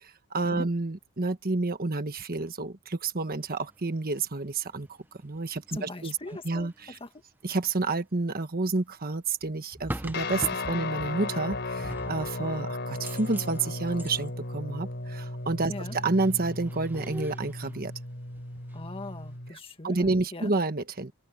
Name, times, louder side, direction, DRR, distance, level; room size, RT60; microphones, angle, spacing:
voice 1, 0.0-4.9 5.2-6.2 6.4-7.0 7.4-17.9 19.5-19.6 19.8-21.1, right 3 dB, 40° right, 1.3 m, -29 dB
sound 1, 3.6-3.8 4.7-4.9 5.2-7.0 9.4-11.2 11.5-12.5 12.9-14.3 15.1-15.2 15.4-17.8 18.0-18.9 19.2-19.4, right 1 dB, 10° right, 0.9 m, -42 dB
voice 2, 5.7-6.7 7.0-7.1 15.7-16.0 18.7-20.5, left 2 dB, 25° left, 1.9 m, -40 dB
Guitar, 10.1-19.5, left 2 dB, 50° left, 4.1 m, -35 dB
open air
head